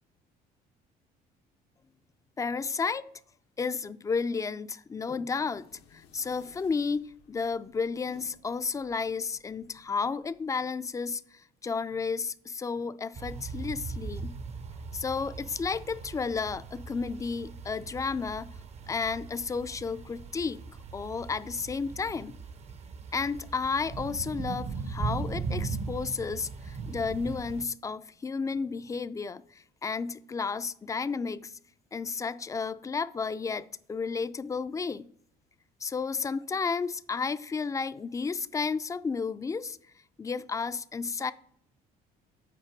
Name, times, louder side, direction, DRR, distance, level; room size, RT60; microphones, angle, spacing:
voice 1, 2.4-3.1 3.6-7.0 7.3-14.3 14.9-18.5 18.9-20.6 20.9-22.3 23.1-31.6 31.9-35.1 35.8-39.8 40.2-41.3, left 5 dB, 20° left, 0.3 m, -32 dB
sound 1, 5.2-10.9, left 7 dB, 90° left, 0.9 m, -61 dB
sound 2, 13.2-27.6, right 5 dB, 40° right, 0.6 m, -39 dB
8.3 x 4.6 x 4.5 m
cardioid pair, 110°, 17 cm